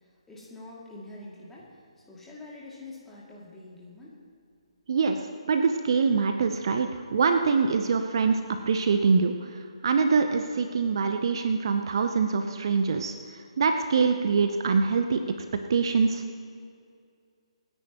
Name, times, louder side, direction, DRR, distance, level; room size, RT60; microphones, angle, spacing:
voice 1, 0.3-4.2, left 2 dB, 5° left, -6 dB, 2.6 m, -45 dB
voice 2, 4.9-16.2, right 5 dB, 45° right, 6 dB, 0.8 m, -25 dB
27.0 x 9.9 x 3.0 m, 2.3 s
figure-of-eight pair, 140°, 3 cm